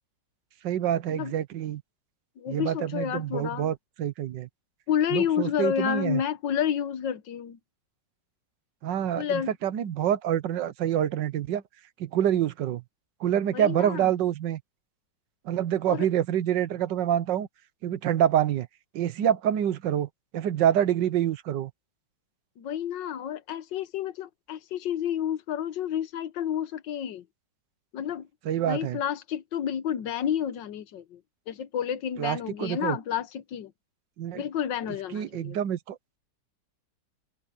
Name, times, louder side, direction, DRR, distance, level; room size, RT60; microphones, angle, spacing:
voice 1, 0.6-1.8 2.5-4.5 5.1-6.2 8.8-11.6 12.0-12.8 13.2-14.6 15.4-17.5 17.8-18.7 18.9-21.7 28.4-29.0 32.2-33.0 34.2-34.4 35.1-36.0, right 10 dB, 80° right, 1.6 m, -26 dB
voice 2, 2.4-3.7 4.9-7.6 9.2-9.5 13.5-14.1 15.9-16.1 22.6-27.2 27.9-28.3 28.6-31.2 31.5-33.7 34.3-35.6, left 9 dB, 90° left, 1.7 m, -30 dB
omnidirectional pair, 1.9 m